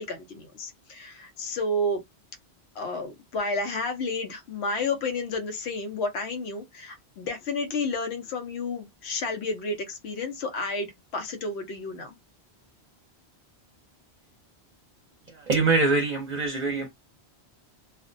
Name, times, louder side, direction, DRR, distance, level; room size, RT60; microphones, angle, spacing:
voice 1, 0.0-2.0 2.8-12.2, left 2 dB, 85° left, 0.9 m, -31 dB
voice 2, 15.3-16.9, right 3 dB, 45° right, 0.7 m, -24 dB
2.4 x 2.1 x 2.5 m
omnidirectional pair, 1.1 m